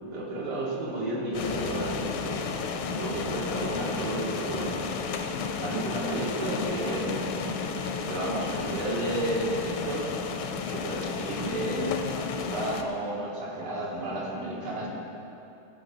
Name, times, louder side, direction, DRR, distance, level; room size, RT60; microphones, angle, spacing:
voice 1, 0.0-4.9 5.6-7.2 8.1-10.2 10.7-14.9, right 1 dB, 85° right, -5 dB, 3.0 m, -32 dB
sound 1, 1.3-12.8, left 5 dB, 75° left, 1.5 m, -32 dB
16.0 x 5.6 x 6.0 m, 2.9 s
omnidirectional pair, 2.3 m